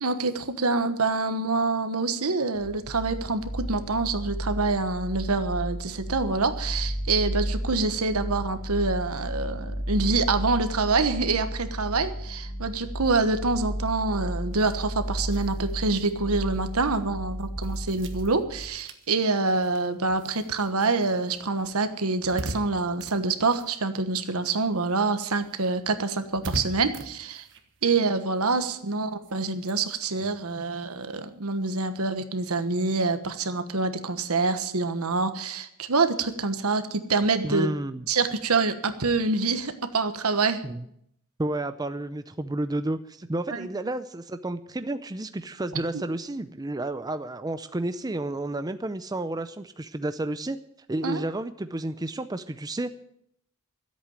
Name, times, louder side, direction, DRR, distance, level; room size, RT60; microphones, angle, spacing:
voice 1, 0.0-27.4 27.8-37.7 38.1-40.6 43.5-43.7 45.9-46.0 51.0-51.2, right 3 dB, 75° right, 9 dB, 1.2 m, -26 dB
sound 1, 2.6-18.6, equal, 75° left, 3.8 m, -33 dB
sound 2, 14.5-24.4 24.7-31.7, right 1 dB, 55° right, 1.4 m, -43 dB
voice 2, 37.4-38.1 40.6-40.9 41.4-50.6 50.9-53.0, right 2 dB, 15° right, 10 dB, 0.5 m, -31 dB
13.5 x 8.3 x 8.8 m, 0.72 s
head